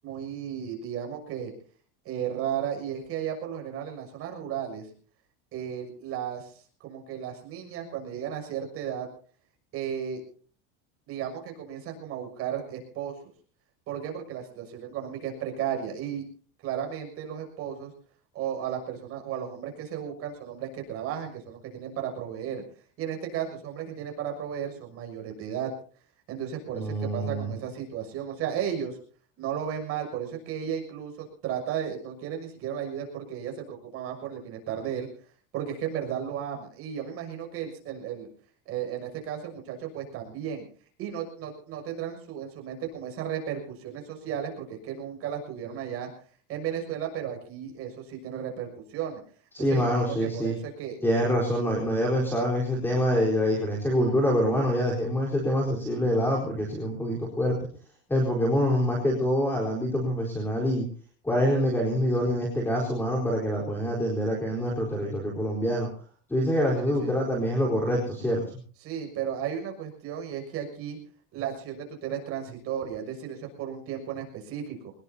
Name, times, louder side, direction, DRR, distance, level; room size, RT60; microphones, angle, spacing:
voice 1, 0.0-1.5 2.0-4.9 5.5-9.1 9.7-10.2 11.1-13.1 13.9-16.2 16.6-17.9 18.3-22.6 23.0-25.7 26.3-29.0 29.4-35.1 35.5-38.3 38.6-40.6 41.0-46.1 46.5-49.2 49.6-51.0 67.0-67.1 68.8-71.0 71.3-74.9, right 9 dB, 45° right, 3 dB, 6.4 m, -34 dB
voice 2, 26.7-27.5 49.5-50.5 51.0-57.5 58.1-60.8 61.2-65.9 66.3-68.4, equal, 5° left, -1 dB, 4.2 m, -25 dB
23.5 x 20.0 x 2.8 m, 0.42 s
cardioid pair, 155°, 31 cm